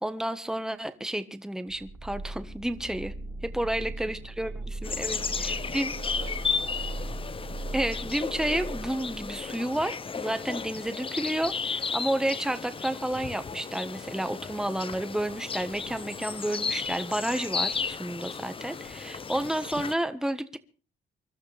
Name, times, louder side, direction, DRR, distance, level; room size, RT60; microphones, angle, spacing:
voice 1, 0.0-3.1 3.4-5.9 7.7-20.6, right 1 dB, 5° right, 1.4 m, -31 dB
sound 1, 1.7-9.5, right 2 dB, 30° right, 3.1 m, -38 dB
voice 2, 3.6-7.1, right 9 dB, 90° right, 1.8 m, -51 dB
sound 2, 4.8-19.9, left 5 dB, 25° left, 0.7 m, -34 dB
sound 3, 14.5-19.9, left 4 dB, 70° left, 5.8 m, -57 dB
25.0 x 12.5 x 3.4 m
cardioid pair, 90°, 20 cm